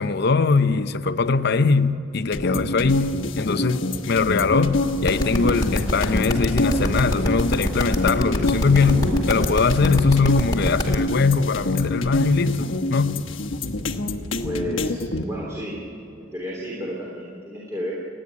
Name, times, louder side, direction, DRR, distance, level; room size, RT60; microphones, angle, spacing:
voice 1, 0.0-13.2, left 4 dB, 55° left, 0.7 m, -21 dB
sound 1, 2.3-15.2, left 2 dB, 85° left, 1.2 m, -26 dB
Thunder, 3.4-12.8 13.1-13.3 13.6-13.7 13.9-14.0, right 1 dB, 45° right, 1.3 m, -36 dB
sound 2, 5.1-10.9, left 1 dB, 20° left, 2.2 m, -24 dB
voice 2, 14.3-15.7 16.2-17.9, equal, 15° right, 3.2 m, -32 dB
29.5 x 10.0 x 9.5 m
head